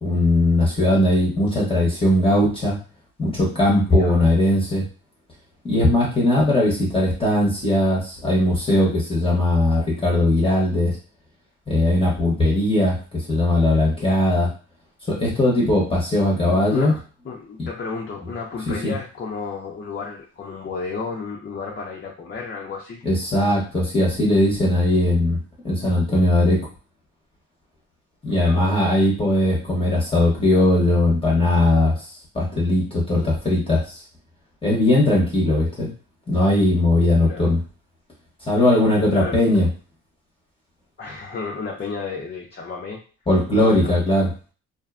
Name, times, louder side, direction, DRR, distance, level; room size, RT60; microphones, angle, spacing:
voice 1, 0.0-2.8 3.2-4.8 5.6-11.0 11.7-14.5 15.1-16.9 17.6-17.7 18.7-18.9 23.0-25.4 25.6-26.6 28.2-32.0 32.3-34.0 34.6-35.9 36.3-37.6 38.5-39.7 43.3-44.3, left 1 dB, 20° left, -4 dB, 0.9 m, -19 dB
voice 2, 3.9-4.2 16.4-23.0 28.3-28.6 37.2-37.4 39.1-39.5 41.0-43.0 43.6-43.9, left 4 dB, 35° left, -2 dB, 0.6 m, -32 dB
2.5 x 2.2 x 2.4 m, 0.37 s
cardioid pair, 90°, 30 cm